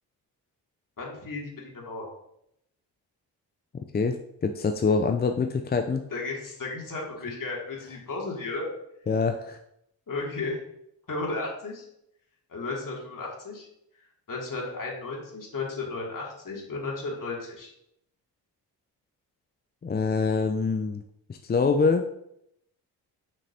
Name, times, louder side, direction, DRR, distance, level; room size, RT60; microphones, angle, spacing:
voice 1, 1.0-2.0 6.1-8.7 10.1-10.6 11.1-11.9 12.5-13.7 14.3-17.7, left 3 dB, 45° left, -2 dB, 2.6 m, -34 dB
voice 2, 3.9-6.0 9.1-9.6 19.8-21.0 21.4-22.1, left 4 dB, 20° left, 5 dB, 0.5 m, -25 dB
6.9 x 5.9 x 2.8 m, 0.77 s
hypercardioid pair, 45°, 47 cm